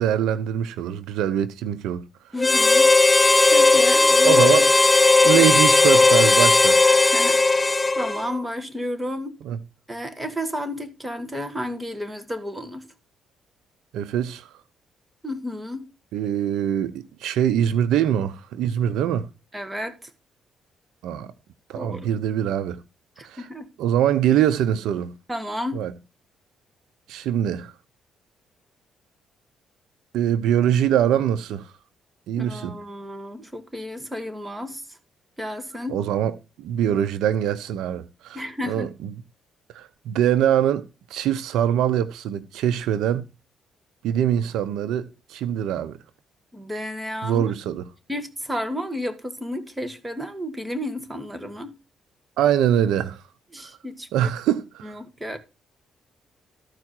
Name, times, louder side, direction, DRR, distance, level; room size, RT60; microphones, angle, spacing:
voice 1, 0.0-2.0 4.2-4.7 5.2-6.8 9.4-9.6 13.9-14.5 16.1-19.3 21.0-21.3 21.7-22.8 23.2-23.5 23.8-25.1 25.7-25.9 27.1-27.7 30.1-31.7 32.3-32.8 35.9-38.9 39.7-40.8 41.1-43.3 44.0-46.0 47.2-47.8 52.4-53.2 54.1-55.0, right 10 dB, 85° right, 0.8 m, -23 dB
voice 2, 2.3-2.9 3.5-4.7 5.3-5.4 7.1-7.7 8.0-9.4 9.9-12.9 15.2-15.9 19.5-20.1 21.7-22.1 23.2-23.7 25.3-25.8 32.4-35.0 35.4-36.0 38.3-38.9 46.5-47.4 48.1-51.7 53.5-54.3 54.8-55.4, left 1 dB, 10° right, 2.0 m, -32 dB
Harmonica, 2.4-8.4, left 3 dB, 20° left, 0.5 m, -16 dB
14.0 x 4.8 x 4.5 m
cardioid pair, 90°, 0 cm